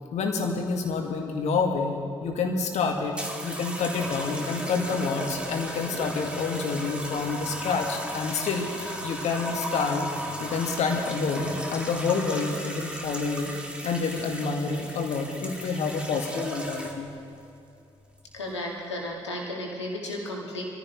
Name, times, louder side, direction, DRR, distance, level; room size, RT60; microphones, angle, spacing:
voice 1, 0.1-3.2 3.4-10.1 10.4-13.5 13.8-17.1, left 4 dB, 50° left, 2 dB, 2.1 m, -28 dB
sound 1, 3.1-17.2 18.0-18.4, equal, 5° right, 2.3 m, -36 dB
voice 2, 18.3-20.6, left 1 dB, 80° left, -1 dB, 2.1 m, -34 dB
24.5 x 15.0 x 3.3 m, 2.7 s
figure-of-eight pair, 45°, 14 cm